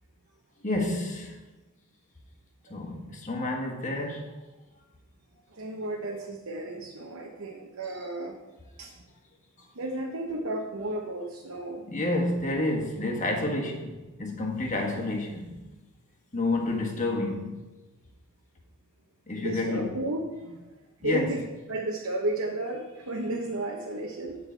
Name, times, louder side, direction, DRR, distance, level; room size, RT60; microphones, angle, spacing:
voice 1, 0.6-1.3 2.7-4.3 11.9-15.6 16.3-17.6 19.3-20.0 21.0-21.3, left 2 dB, 35° left, 0 dB, 1.5 m, -29 dB
voice 2, 5.5-8.4 8.8-8.9 9.7-11.8 19.4-20.7 21.0-21.4 21.7-24.4, right 2 dB, 75° right, 0 dB, 0.9 m, -33 dB
8.1 x 7.5 x 4.5 m, 1.2 s
head